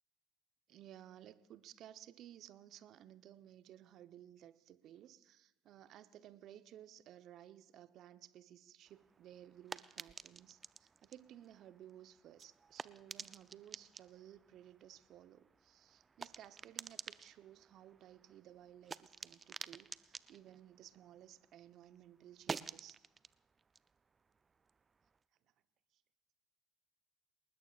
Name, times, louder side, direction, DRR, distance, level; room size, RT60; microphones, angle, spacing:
voice 1, 0.7-23.0 25.9-26.0, right 11 dB, 55° right, 12 dB, 0.9 m, -57 dB
sound 1, 8.9-21.6 21.9-25.2, right 5 dB, 30° right, 0.5 m, -51 dB
28.5 x 20.0 x 2.5 m, 0.88 s
hypercardioid pair, 60°, 0 cm